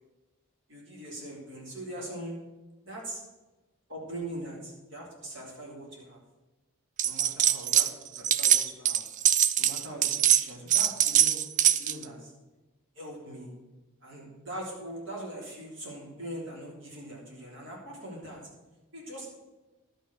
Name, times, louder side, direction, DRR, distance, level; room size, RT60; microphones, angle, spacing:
voice 1, 0.7-2.4 2.8-3.2 3.9-6.2 7.0-7.8 8.1-9.0 9.6-12.3 12.9-13.5 14.0-18.4 18.9-19.3, right 1 dB, 65° right, -2 dB, 3.4 m, -41 dB
sound 1, 7.0-7.9 8.2-12.0, right 10 dB, 35° right, 0.4 m, -23 dB
11.5 x 6.6 x 6.3 m, 1.1 s
head